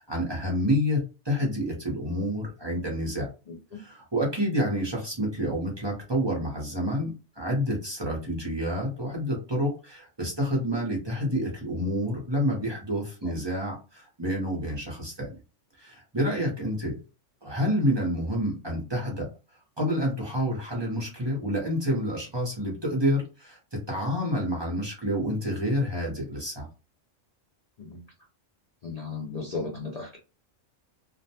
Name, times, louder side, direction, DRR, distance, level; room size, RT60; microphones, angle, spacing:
voice 1, 0.0-3.3 3.7-7.1 7.4-15.4 15.8-17.0 17.4-19.3 19.8-26.7, equal, 25° right, -2 dB, 0.7 m, -28 dB
voice 2, 3.5-3.8 13.2-13.3 27.8-28.0 28.8-30.2, left 4 dB, 80° left, -1 dB, 0.3 m, -36 dB
2.4 x 2.1 x 2.7 m, 0.31 s
omnidirectional pair, 1.3 m